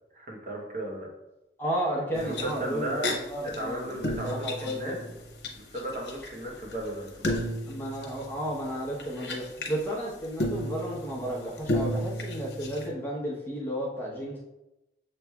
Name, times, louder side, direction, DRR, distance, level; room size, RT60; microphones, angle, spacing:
voice 1, 0.1-1.1 2.2-3.1 3.4-4.9 5.5-7.4, right 1 dB, 45° right, -2 dB, 0.9 m, -35 dB
voice 2, 1.6-3.0 3.3-5.1 7.7-14.4, equal, 10° left, -6 dB, 0.9 m, -33 dB
sound 1, 2.1-3.1 3.5-3.6 3.9-5.5 5.8-9.8 10.4-12.9, left 1 dB, 80° left, 0.8 m, -33 dB
6.7 x 3.2 x 2.3 m, 0.96 s
head